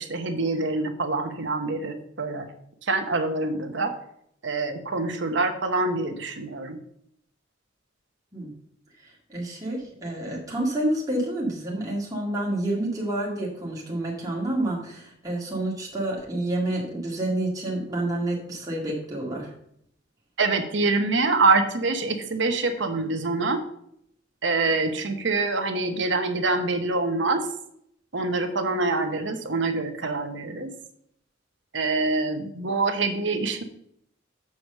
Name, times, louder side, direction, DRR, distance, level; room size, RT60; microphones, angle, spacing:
voice 1, 0.0-2.5 2.8-3.9 4.4-6.8 20.4-23.6 24.4-27.5 28.1-30.7 31.7-33.6, right 3 dB, 65° right, 6 dB, 1.0 m, -25 dB
voice 2, 9.3-19.5, right 1 dB, 20° right, -3 dB, 2.0 m, -28 dB
7.0 x 4.7 x 6.6 m, 0.71 s
head